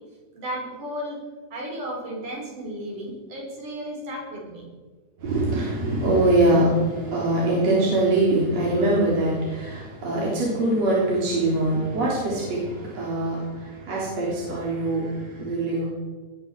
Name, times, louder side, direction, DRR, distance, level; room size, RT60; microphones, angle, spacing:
voice 1, 0.3-1.2 1.5-4.7, equal, 75° right, -2 dB, 6.8 m, -34 dB
voice 2, 5.2-15.9, right 2 dB, 55° right, -5 dB, 4.8 m, -23 dB
19.5 x 14.5 x 4.9 m, 1.4 s
omnidirectional pair, 3.6 m